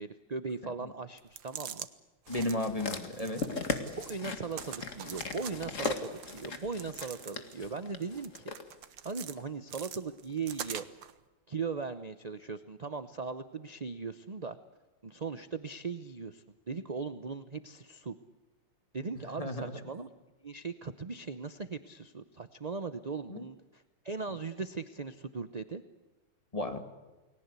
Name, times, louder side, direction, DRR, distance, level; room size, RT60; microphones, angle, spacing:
voice 1, 0.0-1.9 4.0-8.4 9.0-10.8 11.5-14.6 15.0-18.1 18.9-20.1 20.4-25.8, right 4 dB, 35° right, 11 dB, 0.6 m, -39 dB
sound 1, 1.2-1.9 2.3-2.7 3.1-4.2 4.5-5.5 5.8-7.6 8.0-9.4 9.7-11.1, right 9 dB, 80° right, 1.9 m, -44 dB
sound 2, 2.3-8.6 9.4-9.5, left 3 dB, 40° left, 2.3 m, -38 dB
voice 2, 2.3-3.4 19.4-19.8 23.3-23.4 26.5-26.8, left 1 dB, 20° left, 7 dB, 2.3 m, -34 dB
29.5 x 20.5 x 8.3 m, 1.1 s
omnidirectional pair, 2.0 m